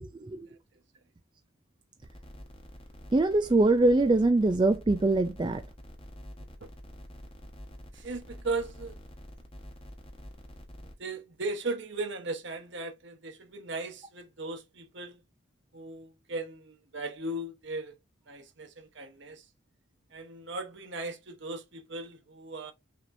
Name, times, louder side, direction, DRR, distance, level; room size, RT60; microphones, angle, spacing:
voice 1, 0.0-0.5 3.1-5.6, right 2 dB, 20° right, 0.3 m, -23 dB
sound 1, 2.0-10.9, equal, 25° left, 1.1 m, -47 dB
voice 2, 7.9-9.0 11.0-15.2 15.7-17.9 18.3-19.4 20.1-22.7, right 2 dB, 60° right, 0.9 m, -37 dB
6.0 x 2.9 x 2.6 m
head